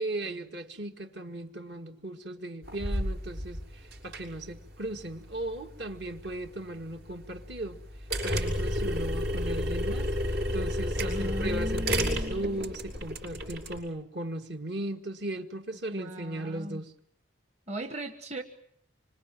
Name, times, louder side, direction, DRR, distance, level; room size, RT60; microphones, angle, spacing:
voice 1, 0.0-7.8 8.2-10.1 10.5-16.9, right 1 dB, 60° right, 1.8 m, -37 dB
sound 1, 2.6-13.8, equal, 85° right, 6.7 m, -32 dB
voice 2, 11.0-12.7 15.9-16.8 17.7-18.4, equal, 35° right, 1.3 m, -38 dB
26.0 x 25.0 x 7.6 m
head